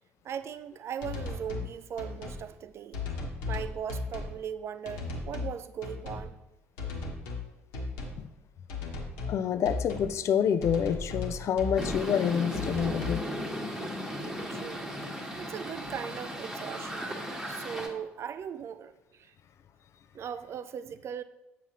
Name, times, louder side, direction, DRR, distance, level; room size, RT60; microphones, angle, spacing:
voice 1, 0.2-3.0 3.4-6.4 14.5-14.9 15.4-17.1 17.5-19.3 20.1-21.2, right 8 dB, 40° right, 13 dB, 0.4 m, -39 dB
sound 1, 1.0-1.7 2.0-2.4 2.9-4.4 4.9-5.5 5.8-6.3 6.8-7.5 7.7-8.2 8.7-9.4 9.6-10.1 10.6-12.0 12.5-13.2, left 3 dB, 65° left, 1.2 m, -36 dB
voice 2, 9.3-13.2, left 8 dB, 40° left, 12 dB, 0.5 m, -28 dB
sound 2, 11.8-17.9, equal, 5° right, 1.2 m, -36 dB
7.7 x 6.0 x 3.0 m, 0.96 s
figure-of-eight pair, 55°, 7 cm